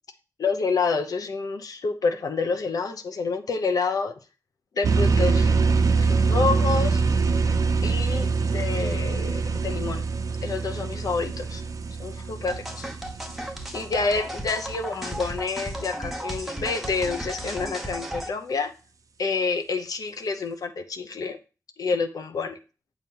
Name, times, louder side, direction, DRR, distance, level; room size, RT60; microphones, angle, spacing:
voice 1, 0.4-4.1 4.7-5.5 6.0-7.0 7.8-10.0 10.4-11.6 12.0-12.9 13.7-18.7 19.2-21.4 21.8-22.6, left 4 dB, 85° left, 7 dB, 0.8 m, -28 dB
sound 1, 4.8-14.3, right 4 dB, 70° right, 0.7 m, -24 dB
sound 2, 12.5-18.3, right 1 dB, 5° right, 1.0 m, -34 dB
8.0 x 3.0 x 5.4 m, 0.33 s
wide cardioid pair, 105°, 6 cm